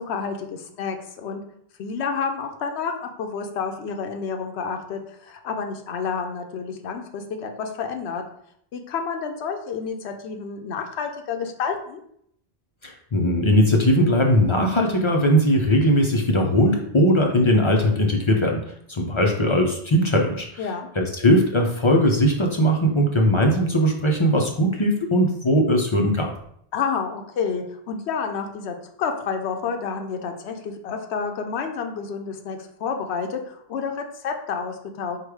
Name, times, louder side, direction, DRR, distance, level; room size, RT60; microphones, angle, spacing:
voice 1, 0.0-1.4 1.8-8.2 8.7-12.0 20.6-20.9 26.7-35.2, left 5 dB, 90° left, 4 dB, 0.9 m, -29 dB
voice 2, 12.8-18.6 18.9-20.7 21.0-26.3, equal, 40° left, 1 dB, 0.4 m, -19 dB
4.7 x 2.3 x 4.7 m, 0.69 s
omnidirectional pair, 1.1 m